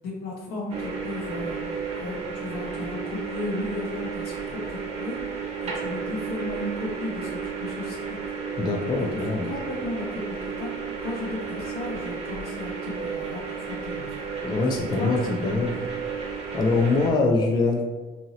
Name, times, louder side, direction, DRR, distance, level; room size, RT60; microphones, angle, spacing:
voice 1, 0.0-5.2 5.6-8.0 9.0-10.7 11.0-14.2 14.9-15.8, left 2 dB, 75° left, -2 dB, 0.9 m, -35 dB
sound 1, 0.7-17.1, right 5 dB, 40° right, 0.8 m, -33 dB
voice 2, 8.6-9.5 14.4-15.7 16.5-17.9, left 3 dB, 25° left, 1 dB, 0.3 m, -23 dB
2.8 x 2.7 x 2.7 m, 1.3 s
cardioid pair, 110°, 17 cm